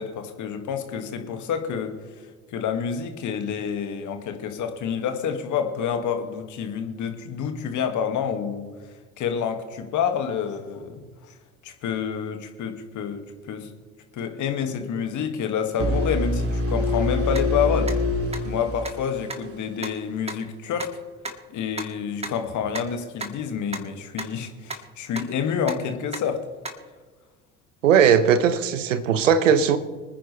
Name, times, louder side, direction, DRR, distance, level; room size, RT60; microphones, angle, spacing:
voice 1, 0.0-2.2 2.5-8.7 9.2-11.1 11.6-13.7 14.1-17.9 18.4-20.9 21.5-26.4, left 7 dB, 50° left, 6 dB, 2.0 m, -28 dB
sound 1, 15.8-19.7, left 2 dB, 35° right, 2.6 m, -25 dB
sound 2, 17.3-17.4 17.9-18.0 18.3-18.4 18.8-18.9 19.3-19.4 19.8-19.9 20.3-20.4 20.8-20.9 21.2-21.3 21.8-21.9 22.2-22.3 22.7-22.8 23.2-23.3 23.7-23.8 24.2-24.3 24.7-24.8 25.2-25.3 25.7-25.8 26.1-26.2 26.6-26.7, right 2 dB, 15° right, 2.2 m, -31 dB
voice 2, 27.8-29.8, right 7 dB, 80° right, 12 dB, 1.1 m, -18 dB
25.0 x 10.0 x 3.3 m, 1.4 s
figure-of-eight pair, 60°, 38 cm